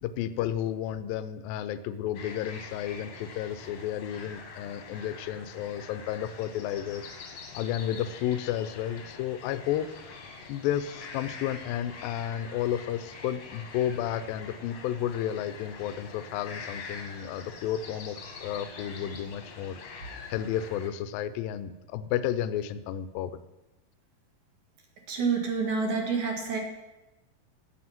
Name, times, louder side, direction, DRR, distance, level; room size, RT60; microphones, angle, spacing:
voice 1, 0.0-7.1 7.5-9.9 10.5-23.3, left 10 dB, 80° left, 13 dB, 2.3 m, -32 dB
sound 1, 2.1-20.9, left 5 dB, 55° left, 2.0 m, -45 dB
voice 2, 25.1-26.6, right 5 dB, 55° right, 2 dB, 3.0 m, -28 dB
15.5 x 7.7 x 5.9 m, 1.0 s
omnidirectional pair, 4.4 m